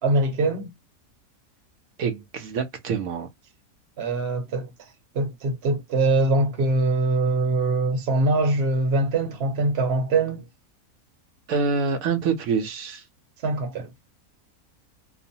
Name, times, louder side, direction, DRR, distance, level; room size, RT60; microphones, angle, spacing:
voice 1, 0.0-0.7 4.0-4.7 5.1-10.4 13.4-13.9, right 2 dB, 50° right, 1.0 m, -23 dB
voice 2, 2.0-3.3 11.5-13.0, right 5 dB, 80° right, 1.0 m, -26 dB
2.9 x 2.0 x 2.6 m
omnidirectional pair, 1.5 m